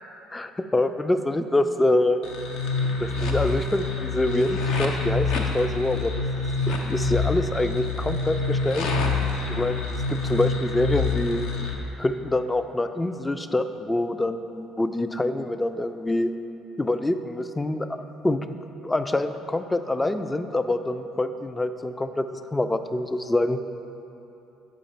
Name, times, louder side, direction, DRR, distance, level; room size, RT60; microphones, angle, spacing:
voice 1, 0.3-2.2 3.0-6.1 6.6-8.9 9.5-11.5 12.0-16.3 16.8-18.5 18.8-23.6, left 1 dB, 15° left, 9 dB, 0.3 m, -26 dB
sound 1, 2.2-11.7, left 3 dB, 70° left, 0.6 m, -26 dB
6.3 x 5.0 x 4.3 m, 2.9 s
hypercardioid pair, 60°, 0 cm